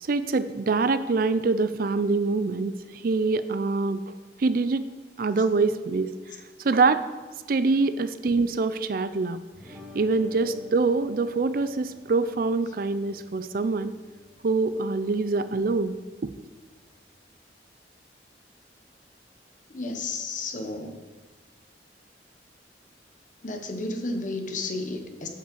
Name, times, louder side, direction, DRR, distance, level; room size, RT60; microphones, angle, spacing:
voice 1, 0.0-4.0 4.4-4.9 5.2-6.1 6.6-7.0 7.5-9.4 9.9-13.9 14.4-15.9 16.2-16.3, right 3 dB, 50° right, 13 dB, 0.4 m, -24 dB
sound 1, 9.5-17.2, left 2 dB, 5° right, 2.7 m, -50 dB
voice 2, 19.7-21.0 23.4-25.3, left 2 dB, 45° left, 5 dB, 1.1 m, -32 dB
8.8 x 5.5 x 7.0 m, 1.3 s
head